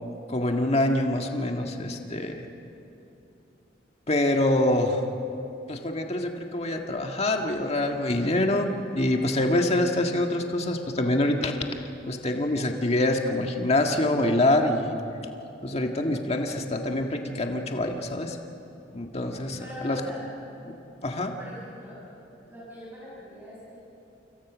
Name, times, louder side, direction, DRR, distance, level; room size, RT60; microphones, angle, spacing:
voice 1, 0.3-2.5 4.1-5.0 5.7-11.6 12.1-14.9 15.6-18.4 18.9-20.0 21.0-21.3, left 1 dB, 35° left, 3 dB, 1.8 m, -25 dB
voice 2, 19.6-20.3 21.4-22.0 22.5-23.8, left 1 dB, 10° right, -7 dB, 6.6 m, -41 dB
28.5 x 26.0 x 6.3 m, 2.9 s
head